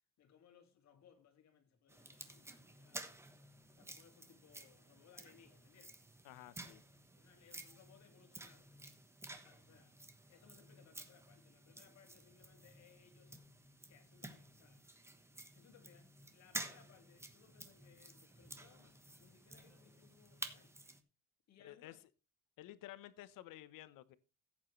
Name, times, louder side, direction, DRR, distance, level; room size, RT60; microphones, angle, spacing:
voice 1, 0.2-3.1 3.8-6.0 7.2-8.7 9.3-10.0 10.3-13.4 13.9-14.9 15.5-20.8 21.5-22.0, left 7 dB, 55° left, 2.3 m, -66 dB
sound 1, 1.9-21.0, right 2 dB, 10° right, 1.2 m, -52 dB
voice 2, 6.2-6.8 21.6-21.9 22.6-24.2, left 14 dB, 80° left, 1.1 m, -53 dB
15.0 x 8.6 x 3.2 m
cardioid pair, 150°, 32 cm